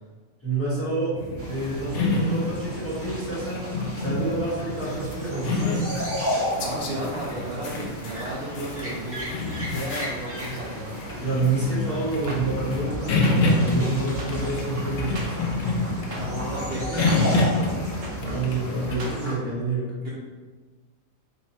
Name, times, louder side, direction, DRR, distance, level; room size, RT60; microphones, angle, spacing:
voice 1, 0.4-1.2 1.5-3.7 4.0-6.0 11.2-15.4 18.2-19.9, right 3 dB, 10° left, -9 dB, 1.1 m, -28 dB
sound 1, 1.2-18.9, left 2 dB, 65° left, 0.8 m, -28 dB
sound 2, 1.4-19.3, equal, 15° right, 0.5 m, -34 dB
voice 2, 6.6-10.9 16.0-17.8 19.9-20.1, right 1 dB, 60° right, -6 dB, 0.8 m, -34 dB
sound 3, 12.3-12.4 13.2-13.4 14.2-14.3 15.2-15.3 16.1-16.2 17.1-17.2 18.0-18.1 19.0-19.1, right 3 dB, 75° right, 1.1 m, -36 dB
3.0 x 2.7 x 4.0 m, 1.4 s
omnidirectional pair, 1.4 m